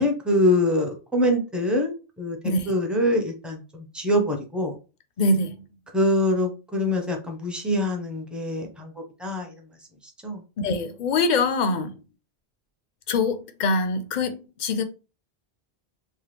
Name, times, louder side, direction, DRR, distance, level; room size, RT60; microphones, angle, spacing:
voice 1, 0.0-2.4 2.7-4.7 5.9-8.9 9.2-9.5 10.2-10.4, left 1 dB, ahead, 0.5 m, -24 dB
voice 2, 2.4-2.7 5.2-5.7 10.6-11.9 13.1-14.8, left 3 dB, 55° left, 0.5 m, -24 dB
3.1 x 2.2 x 3.2 m
omnidirectional pair, 1.1 m